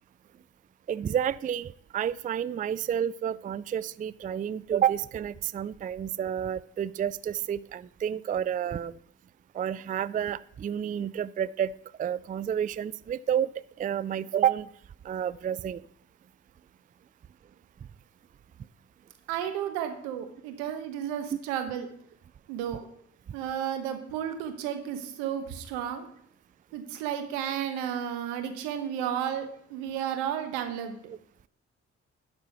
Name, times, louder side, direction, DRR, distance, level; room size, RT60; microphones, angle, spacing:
voice 1, 0.9-8.9 9.5-11.7 12.0-13.5 13.8-14.7 15.0-15.8 21.3-21.4 31.1-31.2, right 9 dB, 25° right, 19 dB, 0.4 m, -30 dB
voice 2, 19.3-21.9 22.5-22.9 23.3-26.1 26.7-31.0, right 9 dB, 85° right, 7 dB, 1.2 m, -33 dB
11.0 x 4.3 x 6.6 m, 0.68 s
hypercardioid pair, 40°, 35 cm